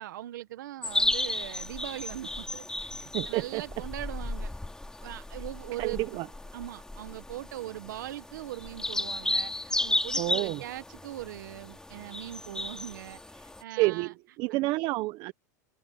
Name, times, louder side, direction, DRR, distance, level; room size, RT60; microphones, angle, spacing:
voice 1, 0.0-4.5 5.0-6.1 6.5-14.1, right 13 dB, 85° right, 1.5 m, -41 dB
sound 1, 0.8-13.6, left 2 dB, 5° left, 3.1 m, -34 dB
voice 2, 3.1-3.6 5.8-6.3 10.2-10.6 13.7-15.3, right 20 dB, 55° right, 1.1 m, -29 dB
supercardioid pair, 120°, 10 cm